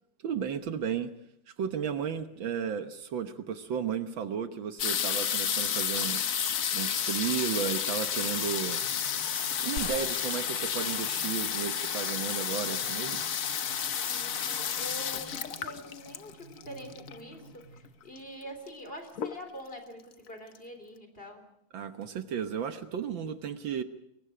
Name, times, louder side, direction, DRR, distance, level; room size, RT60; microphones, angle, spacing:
voice 1, 0.2-1.1 1.6-6.3 6.7-8.8 9.6-13.3 21.7-23.8, right 8 dB, 70° right, 8 dB, 1.8 m, -34 dB
sound 1, 4.8-17.3 18.2-18.3 18.4-18.8 19.2-19.7 20.3-20.4 20.6-20.7, left 8 dB, 50° left, 1.1 m, -31 dB
sound 2, 8.0-18.4, right 3 dB, 35° right, 6.9 m, -54 dB
sound 3, 9.8-12.7, left 4 dB, 85° left, 3.1 m, -45 dB
voice 2, 13.7-21.5, equal, 25° left, 6 dB, 3.9 m, -45 dB
29.5 x 22.5 x 5.0 m, 0.75 s
omnidirectional pair, 2.2 m